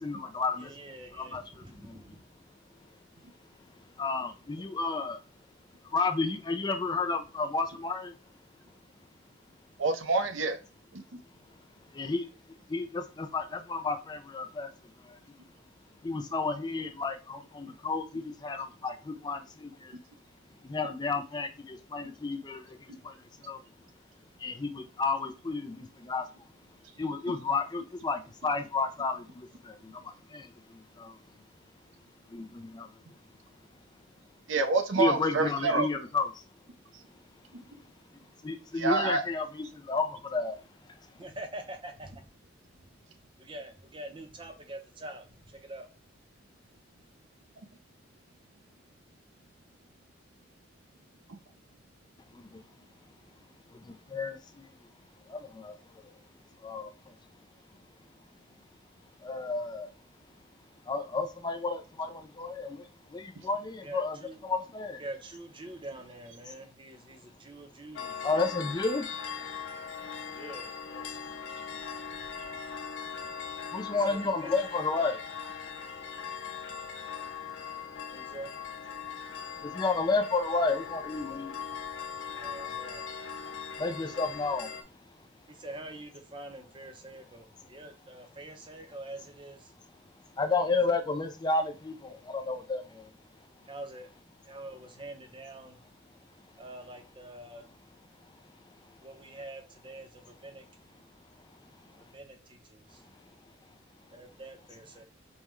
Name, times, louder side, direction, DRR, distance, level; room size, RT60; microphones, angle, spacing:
voice 1, 0.0-2.0 4.0-5.2 5.9-8.1 11.9-12.3 12.7-14.7 15.0-15.2 16.0-20.0 20.6-23.6 24.4-26.3 27.0-31.2 32.3-32.9 35.0-36.4 38.4-40.6 52.3-52.6 53.7-54.7 55.3-56.1 56.6-57.1 59.2-59.9 60.9-64.2 64.4-65.0 68.2-69.1 73.7-75.2 79.6-81.5 83.8-84.7 90.4-93.1, left 3 dB, 20° left, 6 dB, 0.3 m, -32 dB
voice 2, 0.6-2.2 41.2-42.2 43.4-45.9 63.8-64.4 65.0-68.3 70.3-71.1 73.9-74.8 75.4-75.5 78.1-78.5 82.3-83.0 85.5-89.7 90.7-90.9 93.7-94.1 94.4-95.8 96.6-97.6 99.0-100.6 101.9-103.0 104.1-105.0, right 1 dB, 25° right, 5 dB, 0.6 m, -45 dB
voice 3, 9.8-10.6 10.9-11.0 34.5-35.9 38.8-39.2, right 3 dB, 85° right, 7 dB, 0.6 m, -27 dB
sound 1, 67.9-84.8, left 7 dB, 75° left, 0.5 m, -40 dB
5.4 x 2.2 x 3.1 m, 0.31 s
head